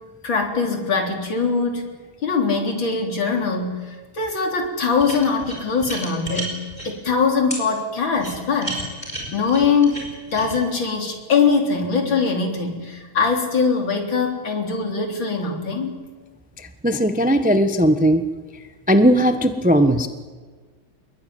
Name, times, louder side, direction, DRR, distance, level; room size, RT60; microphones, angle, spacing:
voice 1, 0.2-1.9 2.2-8.8 9.3-10.0 10.3-16.0, left 5 dB, 65° left, 3 dB, 4.3 m, -22 dB
sound 1, 5.0-6.9 7.5-7.6 8.2-10.6, right 1 dB, 20° left, 7.0 m, -32 dB
voice 2, 16.6-18.2 18.9-20.1, equal, 5° right, 8 dB, 0.8 m, -17 dB
26.0 x 22.0 x 9.5 m, 1.4 s
omnidirectional pair, 2.3 m